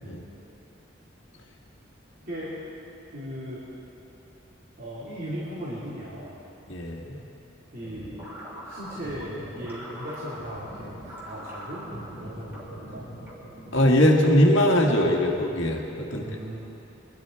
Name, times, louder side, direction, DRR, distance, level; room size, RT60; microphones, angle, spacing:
voice 1, 3.1-3.6 4.8-6.4 7.7-8.2 8.6-13.0 16.2-16.6, equal, 45° right, -10 dB, 3.0 m, -37 dB
voice 2, 6.7-7.2 13.7-16.2, left 1 dB, 75° left, 0 dB, 1.7 m, -21 dB
sound 1, 7.8-14.6, equal, 10° right, 3.2 m, -42 dB
23.5 x 11.0 x 4.5 m, 2.9 s
head